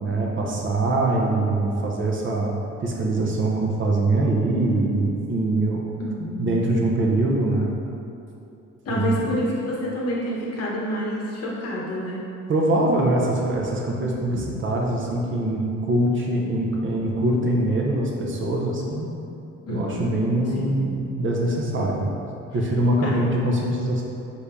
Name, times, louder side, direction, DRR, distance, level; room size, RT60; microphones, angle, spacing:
voice 1, 0.0-2.5 2.8-5.9 6.4-7.7 8.9-9.1 12.5-19.1 19.7-22.1 22.5-24.0, right 2 dB, 40° right, -2 dB, 0.5 m, -23 dB
voice 2, 6.0-6.6 8.8-12.2 19.7-20.1 20.5-20.7 23.0-23.2, equal, 55° left, -4 dB, 0.8 m, -28 dB
3.2 x 2.6 x 3.4 m, 2.7 s
cardioid pair, 90°, 30 cm